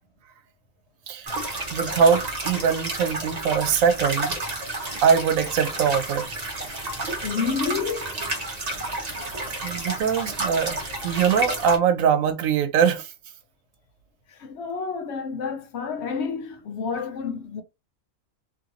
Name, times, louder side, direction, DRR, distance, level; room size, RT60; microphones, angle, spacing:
voice 1, 1.1-1.4 1.7-4.4 5.0-6.3 8.7-9.1 9.6-13.1, right 7 dB, 90° right, 1.1 m, -22 dB
sound 1, 1.3-11.8, right 2 dB, 35° right, 0.8 m, -30 dB
voice 2, 7.2-8.2 14.3-17.6, left 5 dB, 65° left, 0.8 m, -29 dB
3.0 x 2.6 x 2.8 m
omnidirectional pair, 1.4 m